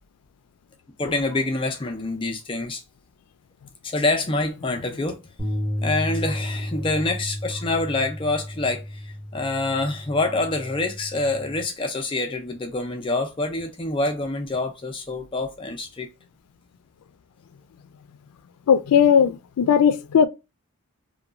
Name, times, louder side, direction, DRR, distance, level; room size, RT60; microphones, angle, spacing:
voice 1, 1.0-2.8 3.8-5.2 5.8-16.1, left 2 dB, 25° left, 0.4 m, -26 dB
sound 1, 5.4-11.6, equal, 5° left, 0.8 m, -32 dB
voice 2, 18.7-20.3, left 7 dB, 90° left, 0.3 m, -17 dB
2.9 x 2.2 x 2.4 m
head